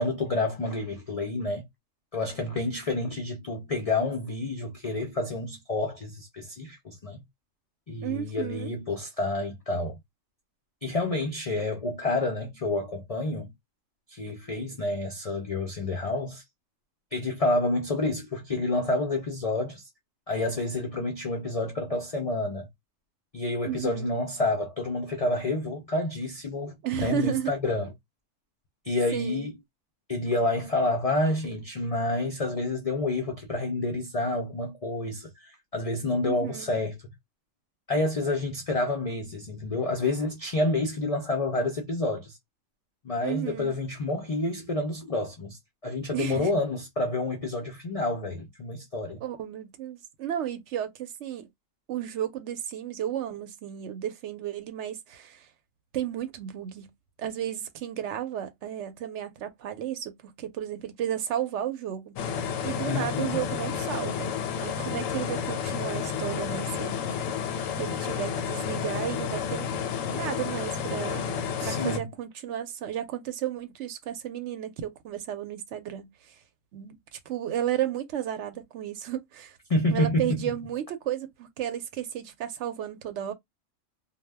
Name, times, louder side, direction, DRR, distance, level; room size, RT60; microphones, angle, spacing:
voice 1, 0.0-1.6 2.1-7.2 7.9-10.0 10.8-13.5 14.1-16.4 17.1-19.9 20.3-22.7 23.3-27.9 28.8-29.5 30.1-37.0 37.9-42.4 43.0-49.2 62.8-63.4 71.6-72.1 79.7-80.4, left 2 dB, 60° left, 0.3 m, -29 dB
voice 2, 8.0-8.7 23.7-24.1 26.8-27.5 29.1-29.5 36.2-36.8 43.2-43.8 46.1-46.5 49.2-51.5 51.9-55.5 55.9-56.9 57.2-62.2 62.6-67.1 67.4-69.8 70.1-76.3 76.7-79.6 79.9-83.3, right 10 dB, 70° right, 0.8 m, -33 dB
sound 1, 62.2-72.0, left 7 dB, 90° left, 1.0 m, -31 dB
2.2 x 2.1 x 3.3 m
omnidirectional pair, 1.3 m